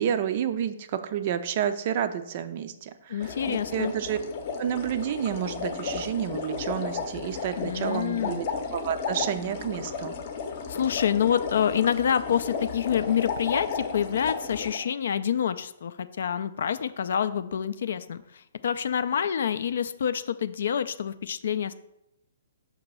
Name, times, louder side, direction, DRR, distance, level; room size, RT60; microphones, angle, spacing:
voice 1, 0.0-4.2 4.6-8.5 8.7-10.1, right 9 dB, 40° right, 11 dB, 0.4 m, -30 dB
voice 2, 3.1-3.9 7.6-8.4 10.7-21.7, left 8 dB, 55° left, 12 dB, 0.3 m, -27 dB
sound 1, 3.2-14.8, left 5 dB, 40° left, 0.7 m, -34 dB
5.9 x 2.9 x 5.4 m, 0.81 s
figure-of-eight pair, 125°, 0 cm